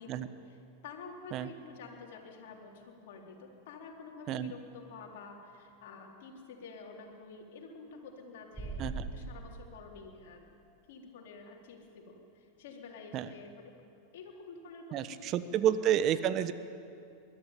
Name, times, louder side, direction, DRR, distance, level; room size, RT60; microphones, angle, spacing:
voice 1, 0.0-10.5 10.9-13.7 14.1-15.9, left 4 dB, 65° left, 0 dB, 3.9 m, -49 dB
sound 1, 8.5-9.1, right 3 dB, 10° right, 4.2 m, -38 dB
voice 2, 14.9-16.5, right 10 dB, 40° right, 12 dB, 1.1 m, -30 dB
21.5 x 13.5 x 9.2 m, 2.6 s
hypercardioid pair, 100°, 0 cm